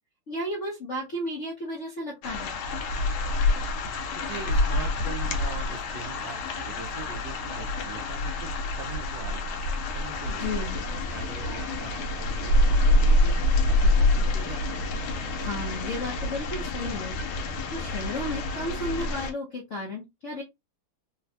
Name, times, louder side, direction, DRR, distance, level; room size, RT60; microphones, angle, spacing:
voice 1, 0.3-2.5 10.3-10.8 15.4-17.2 17.7-20.4, left 1 dB, 60° left, 0.8 m, -33 dB
sound 1, 2.2-19.3, left 2 dB, 80° left, 1.5 m, -26 dB
voice 2, 4.1-9.6 9.9-13.4 13.7-14.9, right 5 dB, 70° right, 1.1 m, -42 dB
3.9 x 2.2 x 2.7 m
omnidirectional pair, 2.4 m